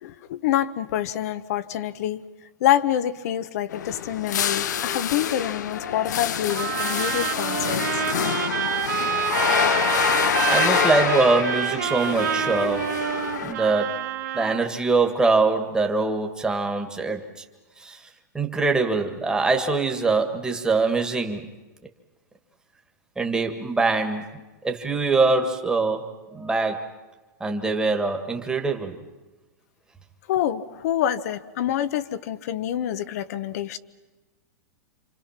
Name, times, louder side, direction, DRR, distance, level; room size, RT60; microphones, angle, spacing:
voice 1, 0.0-2.2 2.6-8.0 30.3-33.8, left 11 dB, 60° left, 13 dB, 1.1 m, -26 dB
sound 1, 3.7-13.5, left 9 dB, 90° left, 0.9 m, -26 dB
Trumpet, 6.5-14.7, right 8 dB, 90° right, 2.5 m, -27 dB
voice 2, 10.5-13.0 13.4-14.0 14.3-17.4 17.8-18.0 18.3-21.5 23.2-24.3 24.6-26.9 27.4-29.0, right 3 dB, 10° right, 4 dB, 1.8 m, -23 dB
28.5 x 26.0 x 5.9 m, 1.2 s
supercardioid pair, 140°, 9 cm